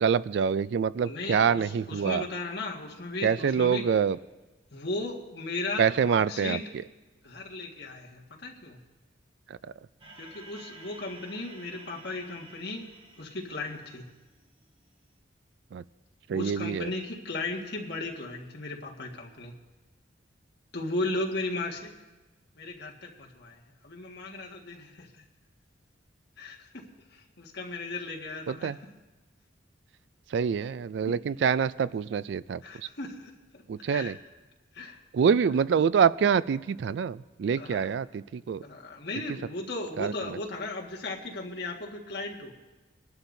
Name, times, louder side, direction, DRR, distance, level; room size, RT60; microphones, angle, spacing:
voice 1, 0.0-2.2 3.2-4.2 5.8-6.6 15.7-15.8 16.3-16.9 28.5-28.8 30.3-32.6 33.7-34.2 35.1-38.6 40.0-40.1, right 7 dB, 65° right, 18 dB, 0.3 m, -26 dB
voice 2, 1.0-3.8 4.7-6.6 7.2-8.8 10.2-12.9 13.2-14.1 16.3-19.5 20.7-21.9 22.6-25.2 26.4-26.8 27.1-28.8 31.4-31.5 32.6-34.2 34.7-35.0 37.6-37.9 38.6-42.5, left 2 dB, 60° left, -1 dB, 1.7 m, -36 dB
sound 1, 10.0-14.4, right 2 dB, 30° right, 1.0 m, -51 dB
24.0 x 11.5 x 2.7 m, 1.1 s
head